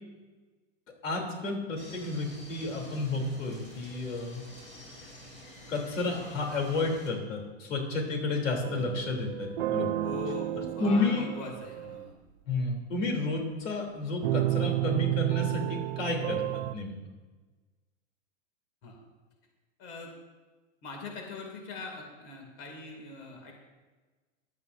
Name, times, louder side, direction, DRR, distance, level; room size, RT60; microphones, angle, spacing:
voice 1, 1.0-4.4 5.7-9.9 10.6-11.3 12.5-16.9, left 3 dB, 85° left, 1 dB, 3.3 m, -31 dB
sound 1, 1.7-7.1, left 1 dB, 20° left, 3.2 m, -49 dB
sound 2, 8.6-12.1 14.2-16.7, right 16 dB, 50° right, 0.4 m, -31 dB
voice 2, 10.0-12.1 18.8-19.0 19.8-20.1 20.8-23.5, left 3 dB, 35° left, 1 dB, 2.6 m, -41 dB
16.5 x 12.0 x 2.7 m, 1.3 s
hypercardioid pair, 145°, 37 cm